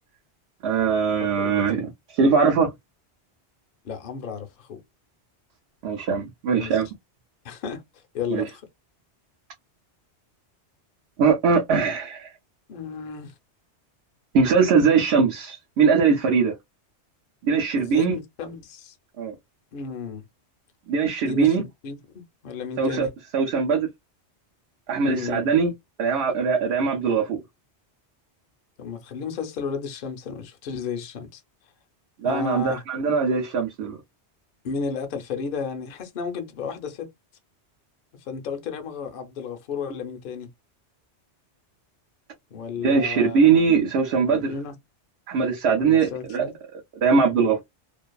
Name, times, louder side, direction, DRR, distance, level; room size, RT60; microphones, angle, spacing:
voice 1, 0.6-2.7 5.8-6.9 8.3-8.4 11.2-12.3 14.3-16.5 17.4-18.2 19.2-19.4 20.9-21.6 22.8-23.1 23.3-23.9 24.9-25.7 26.0-27.4 32.2-34.0 42.8-44.5 45.3-46.4 46.7-47.6, right 5 dB, 70° right, 0.8 m, -21 dB
voice 2, 1.2-1.7 3.8-4.8 6.6-6.8 7.4-7.8 8.1-8.7 12.7-13.3 17.8-18.9 19.7-20.2 21.2-21.6 21.8-23.1 25.1-25.4 28.8-31.4 32.2-32.8 34.6-37.1 38.2-40.5 42.5-43.6 44.3-44.7 45.8-46.5, left 5 dB, 55° left, 0.7 m, -33 dB
2.5 x 2.3 x 2.2 m
omnidirectional pair, 1.2 m